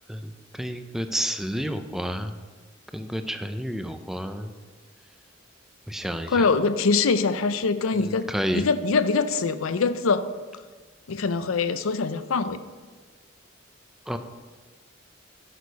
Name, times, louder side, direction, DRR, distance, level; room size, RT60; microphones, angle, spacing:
voice 1, 0.1-2.3 2.9-4.5 5.9-6.5 8.1-8.6 14.1-14.2, equal, ahead, 8 dB, 0.5 m, -30 dB
voice 2, 6.3-8.3 8.5-10.2 11.1-12.6, left 4 dB, 90° left, 12 dB, 0.5 m, -23 dB
11.0 x 6.5 x 4.0 m, 1.4 s
head